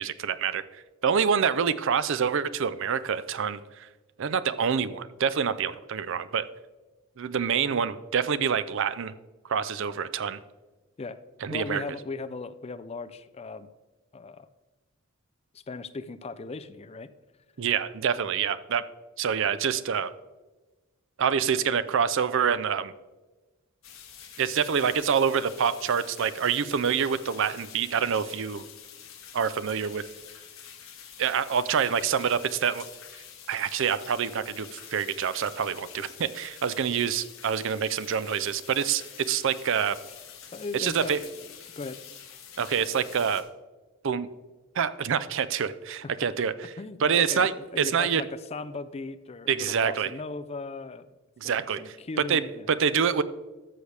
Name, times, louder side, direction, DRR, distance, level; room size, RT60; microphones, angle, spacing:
voice 1, 0.0-3.9 4.2-6.5 7.2-9.1 9.5-10.4 11.4-11.8 17.6-18.8 19.2-20.1 21.2-22.9 24.4-28.6 29.3-30.0 31.2-32.8 33.5-40.0 40.7-41.2 42.6-43.4 44.0-44.3 44.8-46.5 47.0-47.5 47.8-48.2 49.5-50.1 51.4-52.0 52.3-53.2, right 7 dB, 60° right, 15 dB, 0.5 m, -26 dB
voice 2, 11.5-13.7 14.1-14.5 15.5-17.1 40.5-41.3 41.8-42.0 46.8-51.1 51.4-52.7, left 3 dB, 30° left, 12 dB, 0.4 m, -37 dB
sound 1, 23.8-43.4, left 8 dB, 65° left, 1.6 m, -47 dB
13.5 x 6.4 x 3.3 m, 1.2 s
head